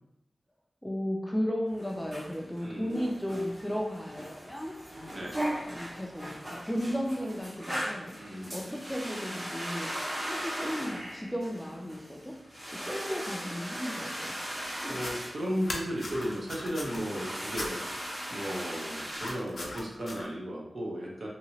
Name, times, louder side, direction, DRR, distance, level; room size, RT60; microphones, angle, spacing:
voice 1, 0.8-4.7 5.7-8.1 8.5-9.9 10.2-12.3 12.8-14.4, equal, 5° left, 0 dB, 0.4 m, -34 dB
sound 1, 1.7-19.3, equal, 30° right, 0.8 m, -38 dB
voice 2, 2.6-3.0 5.1-5.4 8.2-8.8 14.9-18.0 18.3-21.3, equal, 60° right, -3 dB, 0.8 m, -35 dB
sound 2, 14.9-15.1 15.6-17.0 17.5-17.7 19.1-20.3, left 2 dB, 65° left, 0.5 m, -38 dB
2.9 x 2.8 x 2.8 m, 0.85 s
wide cardioid pair, 100°, 0 cm